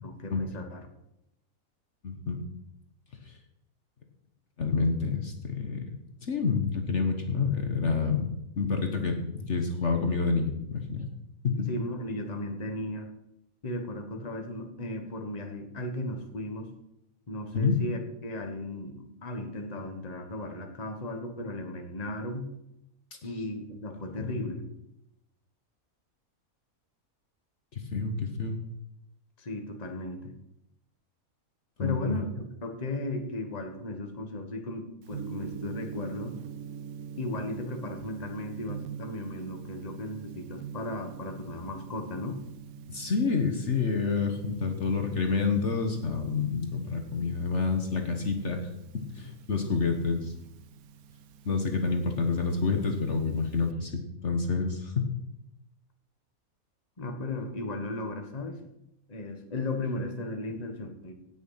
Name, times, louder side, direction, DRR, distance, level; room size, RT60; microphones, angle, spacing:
voice 1, 0.0-0.9 11.7-13.1 13.6-16.7 17.3-22.5 23.2-24.6 29.4-30.3 31.8-36.4 37.2-42.4 57.0-58.6 59.1-61.2, left 1 dB, 30° left, 4 dB, 1.5 m, -36 dB
voice 2, 2.0-2.4 3.2-3.4 4.6-8.3 8.6-11.0 11.4-11.7 17.5-17.8 23.2-23.3 24.2-24.4 27.7-28.6 31.8-32.2 42.9-48.7 48.9-50.3 51.4-55.1, left 4 dB, 55° left, 4 dB, 1.6 m, -28 dB
Gong, 35.1-53.7, right 7 dB, 80° right, 1.2 m, -45 dB
17.5 x 6.6 x 5.7 m, 0.85 s
omnidirectional pair, 1.5 m